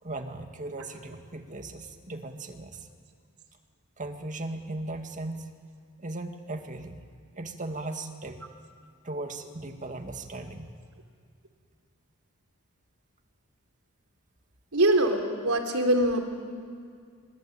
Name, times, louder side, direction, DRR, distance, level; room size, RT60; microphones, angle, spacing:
voice 1, 0.0-2.9 4.0-5.5 6.0-7.0 7.4-8.4 9.0-10.7, right 2 dB, 35° right, 6 dB, 2.1 m, -37 dB
voice 2, 14.7-16.2, right 1 dB, 85° right, 4 dB, 3.8 m, -23 dB
25.5 x 25.5 x 8.9 m, 2.1 s
head